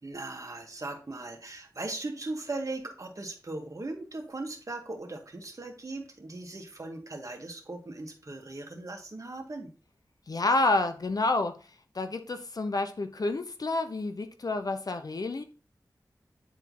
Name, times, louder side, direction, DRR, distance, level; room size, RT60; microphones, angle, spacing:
voice 1, 0.0-9.7, right 2 dB, 50° right, 2.1 m, -38 dB
voice 2, 10.3-11.6 11.9-15.4, left 2 dB, 60° left, 1.0 m, -29 dB
9.8 x 4.3 x 4.1 m
wide cardioid pair, 60°, 7 cm